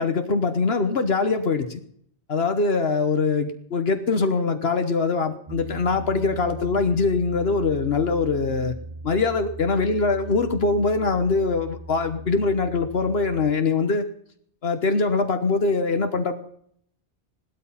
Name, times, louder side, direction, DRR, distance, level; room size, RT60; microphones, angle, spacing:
voice 1, 0.0-1.8 2.3-8.7 9.0-14.1 14.6-16.4, left 4 dB, 65° left, 8 dB, 1.4 m, -23 dB
Piano, 5.5-13.5, right 2 dB, 35° right, 0.6 m, -39 dB
17.5 x 12.5 x 5.7 m, 0.67 s
omnidirectional pair, 1.1 m